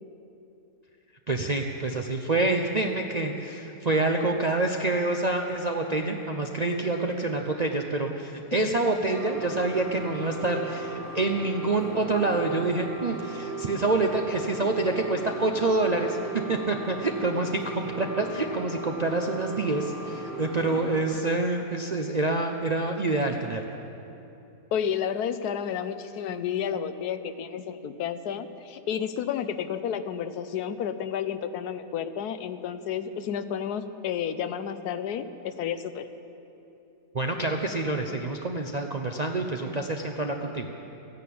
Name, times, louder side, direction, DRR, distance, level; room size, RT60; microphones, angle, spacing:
voice 1, 1.3-23.6 37.1-40.7, right 2 dB, 60° right, 2 dB, 0.4 m, -27 dB
sound 1, 9.1-21.0, right 2 dB, 10° right, 3.8 m, -37 dB
voice 2, 24.7-36.1, left 8 dB, 75° left, 11 dB, 1.2 m, -31 dB
14.0 x 10.5 x 8.5 m, 2.9 s
omnidirectional pair, 1.7 m